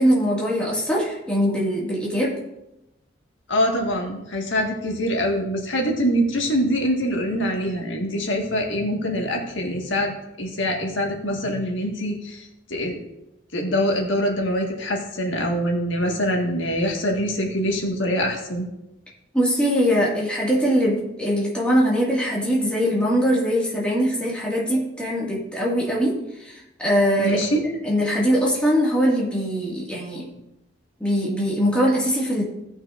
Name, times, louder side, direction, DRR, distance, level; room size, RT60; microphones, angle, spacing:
voice 1, 0.0-2.4 19.3-27.4 27.8-30.3 31.0-32.4, equal, 5° left, -5 dB, 1.9 m, -22 dB
voice 2, 3.5-10.1 10.4-13.0 13.5-18.7 27.2-27.6, equal, 80° left, 1 dB, 1.7 m, -24 dB
17.0 x 6.2 x 2.5 m, 0.90 s
head